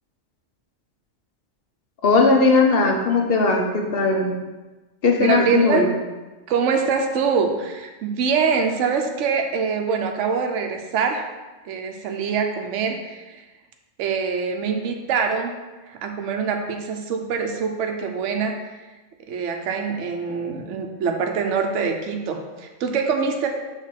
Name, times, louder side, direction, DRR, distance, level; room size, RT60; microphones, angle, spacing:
voice 1, 2.0-4.3 5.0-5.9, left 3 dB, 50° left, 2 dB, 1.0 m, -18 dB
voice 2, 5.2-5.9 6.5-11.2 11.6-13.2 14.0-15.5 16.0-18.5 19.3-23.5, right 5 dB, 65° right, 3 dB, 1.0 m, -24 dB
6.4 x 3.6 x 5.8 m, 1.2 s
omnidirectional pair, 1.4 m